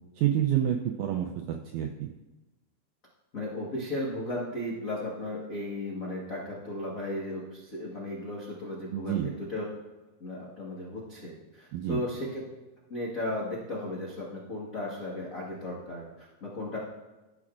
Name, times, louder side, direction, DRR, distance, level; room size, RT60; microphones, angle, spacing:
voice 1, 0.2-2.1 8.9-9.3 11.7-12.0, right 11 dB, 85° right, 3 dB, 1.7 m, -28 dB
voice 2, 3.3-9.6 10.2-12.4 12.9-16.8, left 1 dB, 85° left, -6 dB, 0.7 m, -35 dB
14.5 x 6.1 x 2.4 m, 1.1 s
omnidirectional pair, 3.9 m